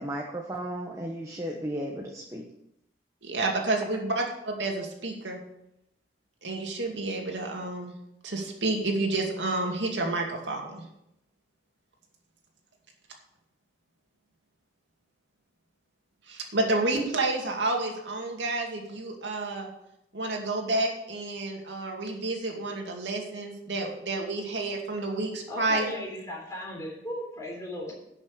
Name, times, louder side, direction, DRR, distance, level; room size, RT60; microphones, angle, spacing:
voice 1, 0.0-2.4, right 1 dB, 15° right, 0 dB, 1.1 m, -34 dB
voice 2, 3.2-5.4 6.4-7.9 8.2-10.8 16.3-19.7 20.1-25.9, right 2 dB, 85° right, 1 dB, 2.4 m, -30 dB
voice 3, 25.5-27.9, left 1 dB, 15° left, -2 dB, 3.5 m, -36 dB
11.0 x 6.3 x 6.7 m, 0.81 s
head